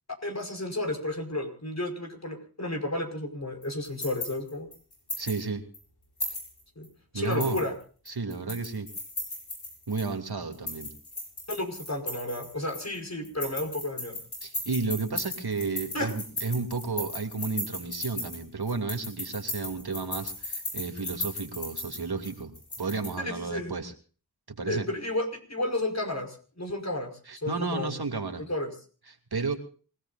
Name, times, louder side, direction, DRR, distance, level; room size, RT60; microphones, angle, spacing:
voice 1, 0.2-4.7 6.8-6.9 7.1-7.7 11.5-14.2 15.9-16.1 23.2-23.7 24.6-27.1 27.4-27.9 28.5-28.7, left 1 dB, 45° left, 4 dB, 5.3 m, -32 dB
sound 1, 3.6-5.4 5.7-5.8 6.2-6.9 7.2-10.1 10.5-13.0 13.2-23.1, left 1 dB, 85° left, 7.8 m, -36 dB
voice 2, 5.2-5.6 7.1-7.6 8.1-8.9 9.9-10.9 14.4-22.5 22.8-23.9 24.5-24.9 27.3-28.4 29.1-29.5, right 4 dB, 80° right, 5 dB, 2.8 m, -32 dB
27.0 x 17.5 x 2.6 m, 0.41 s
wide cardioid pair, 40°, 38 cm